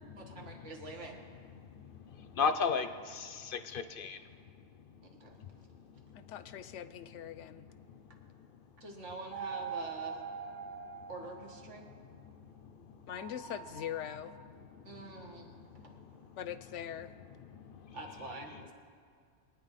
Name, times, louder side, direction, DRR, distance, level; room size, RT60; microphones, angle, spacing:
voice 1, 0.3-1.2 5.0-5.4 8.8-10.2 11.1-11.9 14.8-16.0 17.9-18.7, right 2 dB, 85° right, 1 dB, 2.0 m, -46 dB
voice 2, 1.6-4.2 5.4-5.5 6.0-6.3 7.3-7.8 8.2-8.3 12.3-13.0 14.5-14.9 15.7-16.2 17.4-18.0, left 5 dB, 60° left, 10 dB, 0.7 m, -37 dB
voice 3, 6.1-7.6 13.1-14.3 16.4-17.1, left 10 dB, 90° left, 13 dB, 0.9 m, -42 dB
sound 1, 9.3-11.9 13.1-14.4, right 6 dB, 50° right, 0.7 m, -43 dB
22.5 x 9.6 x 4.1 m, 2.1 s
omnidirectional pair, 1.2 m